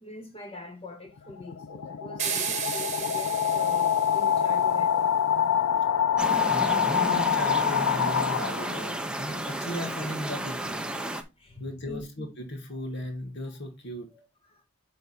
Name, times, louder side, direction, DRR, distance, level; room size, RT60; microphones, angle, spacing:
voice 1, 0.0-5.2 11.4-12.0 14.5-14.6, left 2 dB, 25° left, 1.5 m, -43 dB
sound 1, 1.2-9.0, left 8 dB, 75° left, 0.5 m, -26 dB
sound 2, 2.2-4.6, right 7 dB, 30° right, 1.3 m, -33 dB
sound 3, 6.2-11.2, right 1 dB, 5° right, 0.6 m, -32 dB
voice 2, 6.5-10.8 11.6-14.1, left 1 dB, 50° left, 1.7 m, -36 dB
9.1 x 3.6 x 4.1 m
head